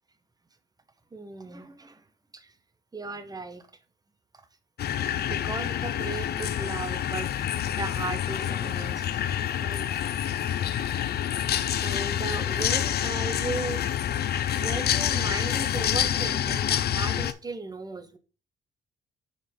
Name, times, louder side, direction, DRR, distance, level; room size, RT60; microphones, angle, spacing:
voice 1, 1.1-2.0 2.3-2.5 2.9-3.7 4.3-4.4 5.2-9.2 9.6-9.9 11.8-13.9 14.3-18.2, right 3 dB, 20° right, 0.9 m, -37 dB
sound 1, 4.8-17.3, left 10 dB, 55° left, 0.5 m, -27 dB
5.0 x 4.0 x 5.3 m
cardioid pair, 90°, 20 cm